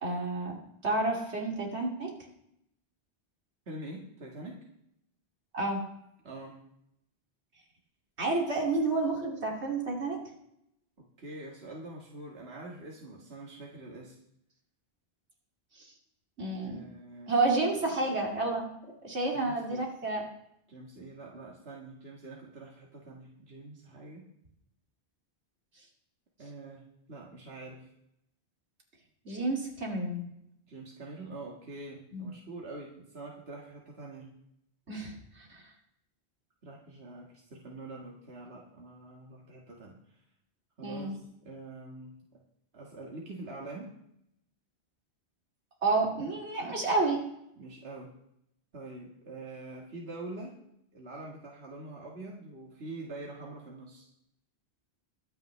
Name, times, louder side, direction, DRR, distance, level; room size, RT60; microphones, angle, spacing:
voice 1, 0.0-0.6 0.8-2.1 5.5-5.8 8.2-10.2 15.7-15.9 16.4-16.8 17.3-18.7 19.0-20.2 29.2-30.3 32.1-32.3 34.9-35.6 40.8-41.1 45.8-47.2, right 3 dB, 90° right, 0 dB, 2.9 m, -30 dB
voice 2, 3.7-4.7 6.2-6.6 11.2-14.2 16.6-17.4 19.3-19.9 20.7-24.3 26.4-26.8 27.1-27.9 30.7-34.3 36.6-40.2 40.8-42.1 42.7-43.9 47.6-48.1 48.7-50.6 50.9-54.1, right 2 dB, 70° right, -2 dB, 2.0 m, -45 dB
23.0 x 9.2 x 3.3 m, 0.77 s
omnidirectional pair, 1.1 m